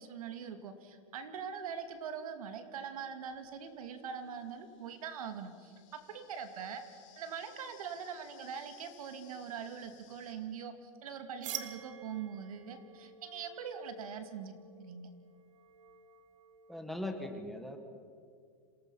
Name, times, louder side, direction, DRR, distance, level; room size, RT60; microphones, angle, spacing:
voice 1, 0.0-15.1, right 7 dB, 90° right, 8 dB, 2.5 m, -43 dB
sound 1, 1.9-2.0 2.9-10.3, left 9 dB, 60° left, 4.6 m, -62 dB
sound 2, 11.4-17.0, right 8 dB, 60° right, 1.6 m, -48 dB
voice 2, 16.7-17.8, left 1 dB, ahead, 6 dB, 1.2 m, -39 dB
27.0 x 18.0 x 5.7 m, 2.3 s
supercardioid pair, 165°, 18 cm